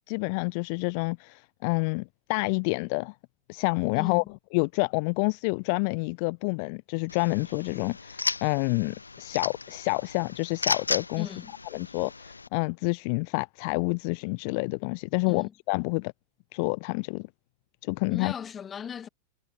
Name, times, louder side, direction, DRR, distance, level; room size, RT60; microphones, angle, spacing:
voice 1, 0.1-3.1 3.5-4.2 4.5-11.3 11.7-16.1 16.5-17.3 17.8-18.3, left 34 dB, 45° left, 1.0 m, -28 dB
voice 2, 3.9-4.3 11.1-11.6 15.3-15.5 18.1-19.1, left 7 dB, 20° left, 2.3 m, -38 dB
sound 1, 7.1-12.5, left 3 dB, 80° left, 2.3 m, -35 dB
figure-of-eight pair, 90°, 0 cm